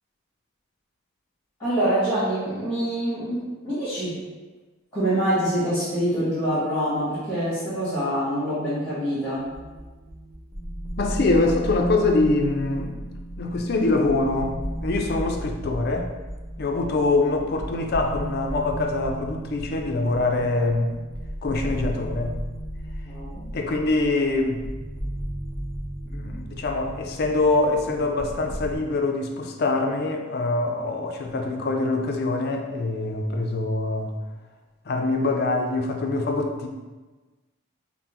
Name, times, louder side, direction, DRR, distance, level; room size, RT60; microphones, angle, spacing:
voice 1, 1.6-4.2 4.9-9.4 23.0-23.5, right 1 dB, 15° left, -13 dB, 1.5 m, -25 dB
sound 1, 9.3-28.8, right 1 dB, 15° right, 0.8 m, -34 dB
voice 2, 11.0-12.9 13.4-16.1 16.6-21.0 21.4-22.3 23.5-24.6 26.1-34.2 34.9-36.7, left 2 dB, 50° left, 3 dB, 0.4 m, -24 dB
5.7 x 2.0 x 2.9 m, 1.2 s
head